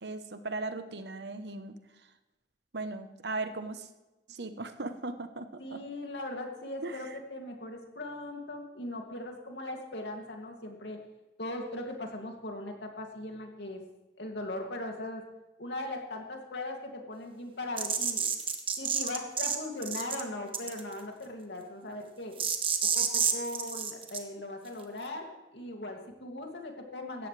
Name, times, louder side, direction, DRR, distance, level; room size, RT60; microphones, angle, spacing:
voice 1, 0.0-1.7 2.7-3.9 4.3-5.8 6.8-7.2, right 3 dB, 70° right, 9 dB, 1.1 m, -38 dB
voice 2, 5.6-11.0 11.4-13.8 14.2-15.2 15.6-18.2 18.8-22.4 22.9-27.3, left 1 dB, 80° left, 2 dB, 2.5 m, -39 dB
sound 1, 17.8-19.6 19.8-20.2 20.5-20.9 22.4-24.2, right 7 dB, 30° right, 1.3 m, -29 dB
17.0 x 13.5 x 3.4 m, 1.0 s
head